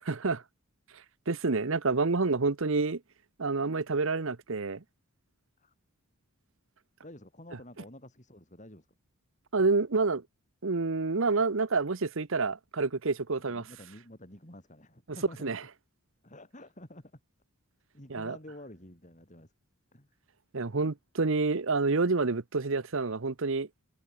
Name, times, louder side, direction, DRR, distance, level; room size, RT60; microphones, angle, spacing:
voice 1, 0.1-0.4 1.3-3.0 3.4-4.8 9.5-10.2 10.6-13.6 15.4-15.6 18.1-18.4 20.5-23.7, right 3 dB, 60° right, 0.9 m, -28 dB
voice 2, 7.0-8.9 13.5-15.6 16.2-17.1 17.9-19.5 19.9-20.1, left 1 dB, 35° left, 5.9 m, -49 dB
head